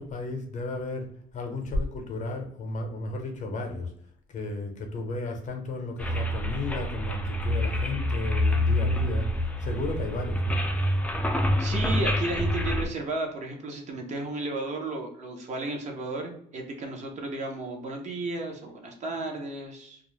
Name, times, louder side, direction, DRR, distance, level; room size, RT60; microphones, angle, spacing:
voice 1, 0.0-3.9 4.3-10.6, left 2 dB, 45° left, 4 dB, 0.7 m, -33 dB
sound 1, 6.0-12.9, left 1 dB, 10° left, 0.4 m, -27 dB
voice 2, 11.6-20.0, right 2 dB, 45° right, 2 dB, 0.6 m, -33 dB
2.3 x 2.0 x 3.0 m, 0.65 s
cardioid pair, 110°, 17 cm